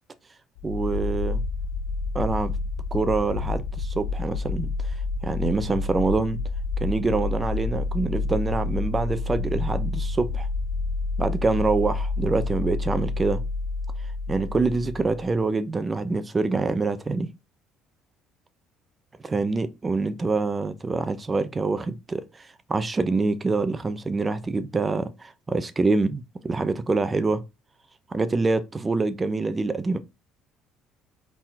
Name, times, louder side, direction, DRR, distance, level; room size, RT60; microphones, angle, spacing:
sound 1, 0.6-15.4, left 3 dB, 85° left, 0.4 m, -29 dB
voice 1, 0.6-1.4 2.1-2.5 2.9-4.7 5.2-6.4 6.8-10.5 11.2-13.4 14.3-17.3 19.2-27.4 28.1-30.0, right 3 dB, 25° right, 0.7 m, -25 dB
4.2 x 3.8 x 2.8 m
hypercardioid pair, 70°, 0 cm